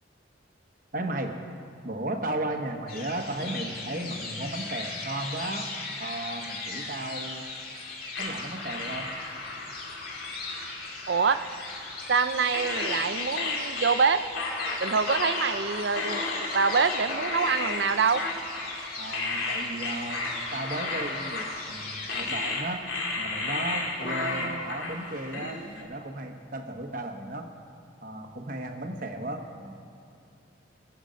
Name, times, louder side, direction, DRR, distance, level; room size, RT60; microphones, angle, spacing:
voice 1, 0.9-1.4 1.8-5.7 6.0-7.4 8.2-9.1 19.0-22.9 23.2-27.5 28.0-29.7, right 1 dB, 45° right, 5 dB, 1.1 m, -35 dB
sound 1, 2.9-22.3, left 3 dB, 50° left, 2.4 m, -39 dB
sound 2, 8.1-12.2 12.5-25.8, left 3 dB, 90° left, 2.5 m, -33 dB
voice 2, 11.1-11.4 12.1-14.2 14.8-16.3 16.5-18.2 24.3-24.6, right 5 dB, 65° right, 12 dB, 0.5 m, -25 dB
21.5 x 8.0 x 5.2 m, 2.4 s
head